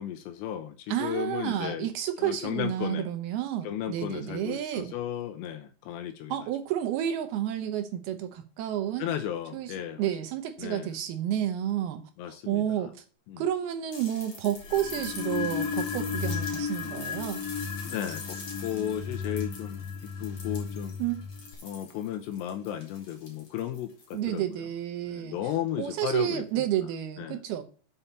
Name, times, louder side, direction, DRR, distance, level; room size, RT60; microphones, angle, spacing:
voice 1, 0.0-1.9 2.2-3.1 3.6-6.4 9.0-10.1 10.6-10.9 12.2-12.9 13.3-13.4 17.8-21.0 21.6-24.7 25.1-26.7 27.2-27.4, left 10 dB, 80° left, 2.8 m, -35 dB
voice 2, 0.9-4.9 6.3-9.1 9.5-12.0 12.5-13.0 13.4-17.4 21.0-21.2 24.1-25.4 25.8-27.6, right 11 dB, 75° right, 2.4 m, -30 dB
sound 1, 13.9-24.3 25.7-25.8, left 3 dB, 40° left, 3.0 m, -45 dB
sound 2, 14.6-21.5, left 6 dB, 65° left, 2.1 m, -34 dB
6.9 x 5.5 x 7.2 m
omnidirectional pair, 5.1 m